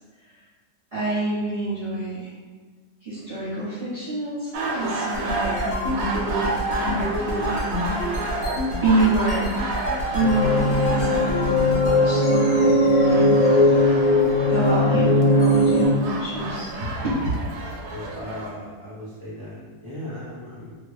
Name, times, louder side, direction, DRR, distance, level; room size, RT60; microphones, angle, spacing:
voice 1, 0.9-2.3 3.0-7.8 8.8-9.5 10.1-13.4 14.5-17.3, right 2 dB, 50° right, -11 dB, 0.7 m, -27 dB
sound 1, 4.5-18.5, right 2 dB, 75° right, 1.0 m, -32 dB
sound 2, 5.1-12.0, equal, 80° left, 0.6 m, -28 dB
sound 3, 10.2-15.9, left 1 dB, 65° left, 0.9 m, -18 dB
voice 2, 17.9-20.8, left 1 dB, 20° left, -10 dB, 0.5 m, -37 dB
2.9 x 2.5 x 3.2 m, 1.4 s
omnidirectional pair, 2.0 m